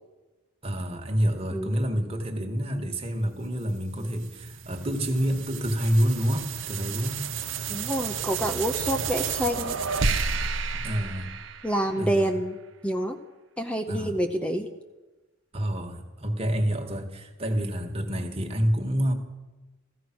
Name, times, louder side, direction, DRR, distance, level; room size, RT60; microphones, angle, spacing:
voice 1, 0.6-7.2 10.7-11.3 12.0-12.3 13.9-14.2 15.5-19.1, equal, 30° right, 4 dB, 1.7 m, -28 dB
sound 1, 3.6-12.2, right 5 dB, 60° right, 0.9 m, -31 dB
voice 2, 7.7-9.7 11.6-12.6 12.8-13.2 13.6-14.7, equal, 5° left, 4 dB, 0.8 m, -27 dB
15.0 x 15.0 x 6.1 m, 1.1 s
head